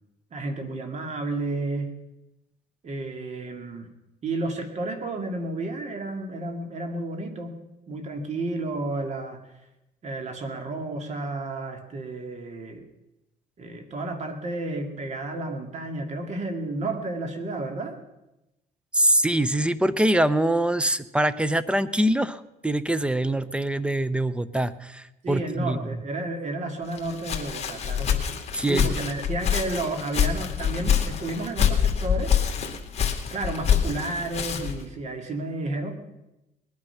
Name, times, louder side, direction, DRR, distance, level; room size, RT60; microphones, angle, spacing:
voice 1, 0.3-1.9 2.8-3.9 4.2-7.6 7.9-9.4 10.0-12.8 13.6-18.0 25.2-28.4 28.7-32.3 33.3-36.0, right 2 dB, 40° right, 6 dB, 2.4 m, -31 dB
voice 2, 18.9-25.8 28.5-28.9, right 1 dB, 5° right, 15 dB, 0.7 m, -24 dB
Walk footsteps, 26.9-34.9, left 8 dB, 40° left, 2.3 m, -26 dB
20.5 x 9.8 x 5.8 m, 0.94 s
cardioid pair, 110°, 17 cm